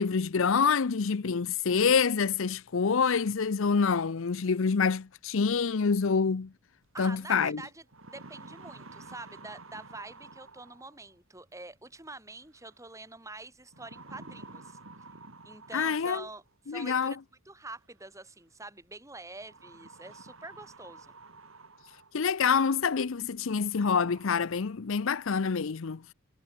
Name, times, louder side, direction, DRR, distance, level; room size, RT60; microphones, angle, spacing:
voice 1, 0.0-6.5 7.0-7.6 15.7-16.2 16.7-17.1 22.1-26.0, left 5 dB, 65° left, 0.6 m, -26 dB
voice 2, 6.9-14.8 15.4-17.2 17.5-21.1, right 2 dB, 15° right, 4.3 m, -46 dB
sound 1, 7.1-7.2 7.7-11.1 12.5-12.9 13.7-16.5 17.8-17.9 19.4-22.3 22.8-22.9 23.4-23.5 23.8-24.3, right 3 dB, 65° right, 3.0 m, -50 dB
head